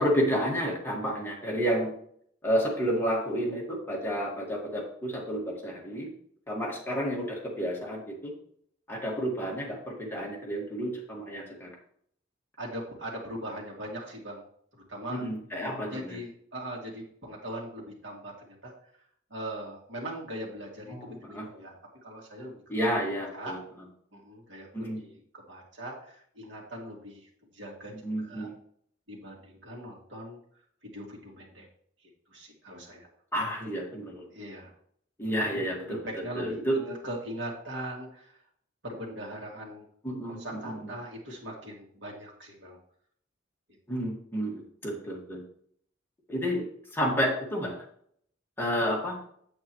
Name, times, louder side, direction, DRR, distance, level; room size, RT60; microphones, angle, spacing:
voice 1, 0.0-1.9 2.4-6.1 6.5-8.3 8.9-11.7 15.1-16.2 20.9-21.5 22.7-23.6 24.7-25.0 28.0-28.5 33.3-34.3 35.2-36.0 36.4-36.8 40.0-40.8 43.9-45.4 46.3-46.6 46.9-47.8 48.6-49.2, equal, 10° left, -3 dB, 1.9 m, -30 dB
voice 2, 12.6-14.5 14.9-15.2 15.9-18.7 19.3-21.7 22.0-22.6 23.3-23.5 24.1-27.9 28.2-28.5 29.1-30.4 30.8-31.7 32.3-33.1 34.3-34.7 35.5-38.4 38.8-39.9 40.3-42.8, right 1 dB, 75° right, -1 dB, 2.5 m, -40 dB
8.4 x 8.4 x 3.1 m, 0.64 s
head